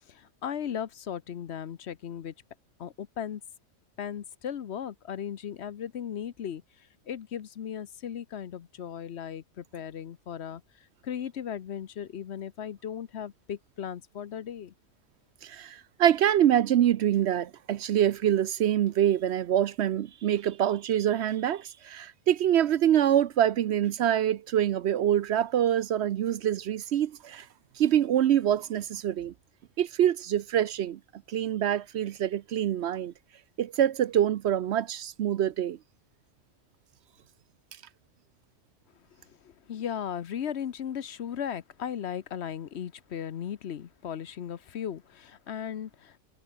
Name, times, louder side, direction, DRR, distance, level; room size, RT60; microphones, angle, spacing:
voice 1, 0.1-2.3 2.8-3.4 4.0-14.7 39.2-46.2, left 9 dB, 65° left, 1.0 m, -37 dB
voice 2, 15.4-27.5 27.8-29.3 29.8-31.0 31.3-33.1 33.6-35.8, right 10 dB, 65° right, 0.8 m, -25 dB
omnidirectional pair, 1.3 m